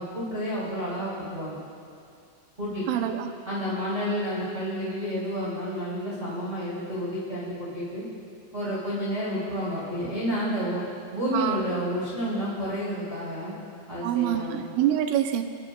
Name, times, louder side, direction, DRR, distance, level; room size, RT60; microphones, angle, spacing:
voice 1, 0.0-1.6 2.6-3.0 3.5-8.0 8.5-10.8 11.1-13.5 13.9-14.6, equal, 15° right, -9 dB, 1.8 m, -30 dB
voice 2, 2.9-3.3 11.3-11.6 14.0-15.4, right 11 dB, 85° right, 6 dB, 3.0 m, -26 dB
29.0 x 11.0 x 2.3 m, 2.3 s
omnidirectional pair, 5.5 m